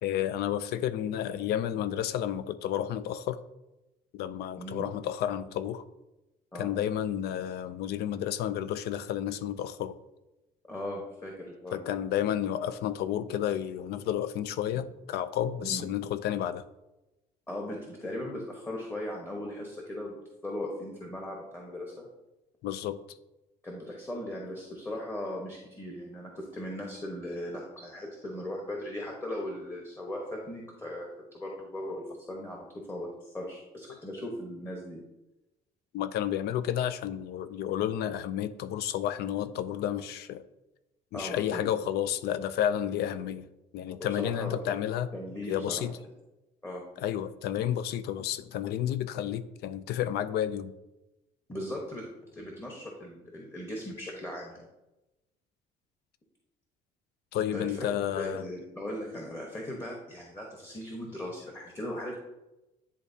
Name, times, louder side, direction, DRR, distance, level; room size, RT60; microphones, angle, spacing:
voice 1, 0.0-3.4 4.1-5.8 6.5-10.0 11.7-16.6 22.6-23.0 35.9-40.4 41.1-43.5 43.7-45.1 45.5-46.0 47.0-50.7 57.3-58.4, left 10 dB, 70° left, 14 dB, 0.4 m, -31 dB
voice 2, 10.7-11.9 15.6-15.9 17.5-20.2 20.4-22.1 23.6-31.1 31.3-35.0 41.1-41.6 44.2-44.8 45.1-45.8 46.6-46.8 51.5-52.1 52.3-54.7 57.5-62.1, left 1 dB, 15° left, -1 dB, 1.1 m, -38 dB
10.5 x 3.5 x 2.7 m, 0.98 s
cardioid pair, 110°, 17 cm